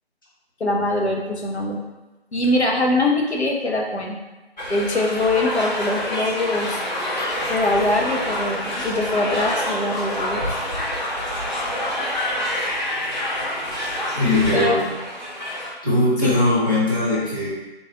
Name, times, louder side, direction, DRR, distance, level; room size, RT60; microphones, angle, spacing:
voice 1, 0.6-1.8 2.3-4.2 4.7-6.8 7.5-10.4 14.5-14.8 16.2-16.3, left 2 dB, 85° left, -1 dB, 1.0 m, -22 dB
sound 1, 4.6-15.7, left 1 dB, 40° left, 1.3 m, -27 dB
voice 2, 14.2-14.8 15.8-17.5, left 1 dB, 20° left, -10 dB, 1.0 m, -20 dB
3.8 x 3.2 x 3.8 m, 1.1 s
figure-of-eight pair, 160°, 32 cm